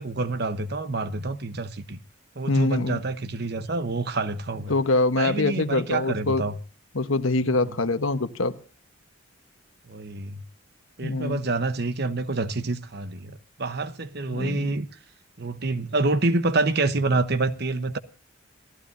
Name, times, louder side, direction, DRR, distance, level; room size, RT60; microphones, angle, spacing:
voice 1, 0.0-2.0 2.4-4.7 5.2-6.6 7.5-7.8 9.9-10.4 11.0-14.9 15.4-18.0, right 3 dB, 50° right, 1.0 m, -27 dB
voice 2, 2.5-3.0 4.7-6.4 6.9-8.5 11.0-11.5 14.3-14.7, left 2 dB, 80° left, 1.2 m, -24 dB
27.0 x 15.0 x 2.7 m
head